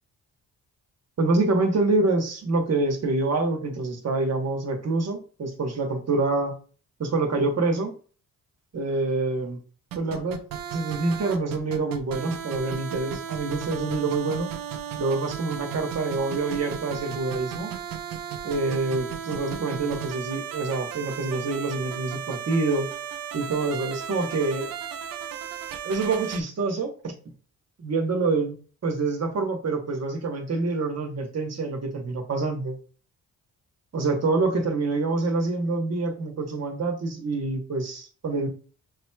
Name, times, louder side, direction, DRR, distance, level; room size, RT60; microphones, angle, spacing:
voice 1, 1.2-6.5 7.0-7.9 8.7-9.6 9.9-10.4 10.7-14.5 15.0-17.7 18.4-22.9 23.3-24.7 25.8-27.1 27.8-28.6 28.8-32.8 33.9-38.5, right 3 dB, 45° right, 4 dB, 1.1 m, -26 dB
sound 1, 9.9-26.4, right 8 dB, 75° right, 0.6 m, -35 dB
6.5 x 3.0 x 2.2 m, 0.40 s
cardioid pair, 80°, 35 cm